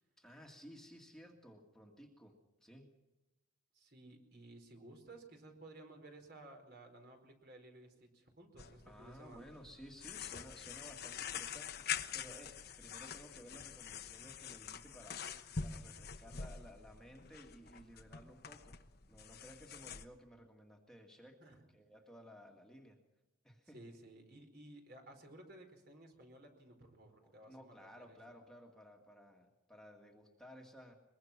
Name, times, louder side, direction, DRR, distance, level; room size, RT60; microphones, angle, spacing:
voice 1, 0.2-2.4 2.6-2.9 8.8-15.2 15.6-18.8 19.1-21.4 21.7-23.0 23.4-24.0 27.2-30.9, equal, 5° left, 1 dB, 2.1 m, -56 dB
voice 2, 3.7-9.5 21.4-21.6 23.7-28.3, right 1 dB, 50° right, 4 dB, 4.7 m, -56 dB
sound 1, 8.6-20.0, left 7 dB, 50° left, 1.1 m, -45 dB
23.0 x 22.0 x 6.0 m, 1.0 s
head